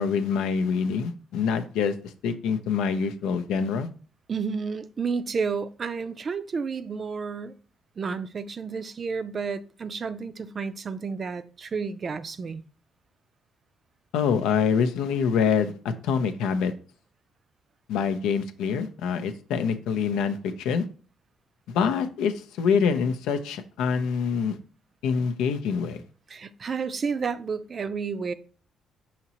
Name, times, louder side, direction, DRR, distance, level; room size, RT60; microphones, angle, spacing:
voice 1, 0.0-1.9 2.2-3.9 14.1-16.7 17.9-20.8 21.7-24.6 25.0-26.0, left 6 dB, 80° left, 0.5 m, -25 dB
voice 2, 4.3-7.6 8.0-12.6 26.3-28.3, right 5 dB, 45° right, 0.4 m, -31 dB
5.8 x 2.9 x 2.9 m
supercardioid pair, 60°, 0 cm